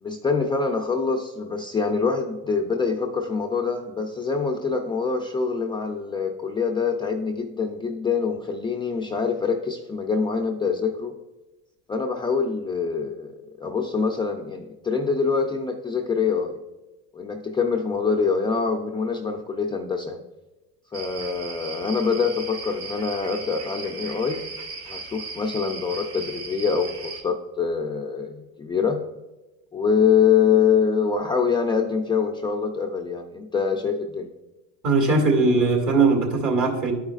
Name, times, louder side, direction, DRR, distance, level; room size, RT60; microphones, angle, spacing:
voice 1, 0.0-11.1 11.9-16.6 17.1-20.2 20.9-24.4 24.9-29.0 29.7-34.3, left 5 dB, 10° left, 1 dB, 0.4 m, -25 dB
sound 1, 20.9-27.2, right 4 dB, 70° right, 1.9 m, -37 dB
voice 2, 34.8-36.9, right 3 dB, 45° right, 2 dB, 2.1 m, -20 dB
11.5 x 4.9 x 2.4 m, 1.1 s
supercardioid pair, 100°, 41 cm